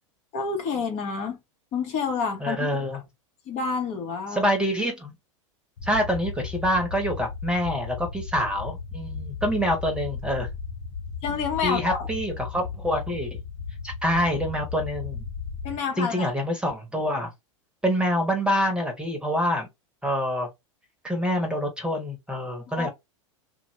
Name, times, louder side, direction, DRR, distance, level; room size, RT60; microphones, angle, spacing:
voice 1, 0.3-1.4 1.7-2.7 3.5-4.5 11.2-12.1 15.6-16.3 22.7-22.9, left 5 dB, 45° left, 1.1 m, -28 dB
voice 2, 2.4-3.0 4.3-5.1 5.8-10.5 11.6-13.4 13.8-15.2 16.0-17.3 17.8-19.7 20.0-20.5 21.0-22.9, equal, 5° right, 1.0 m, -26 dB
sound 1, 5.8-15.8, left 5 dB, 65° left, 1.0 m, -35 dB
2.6 x 2.5 x 3.1 m
hypercardioid pair, 100°, 17 cm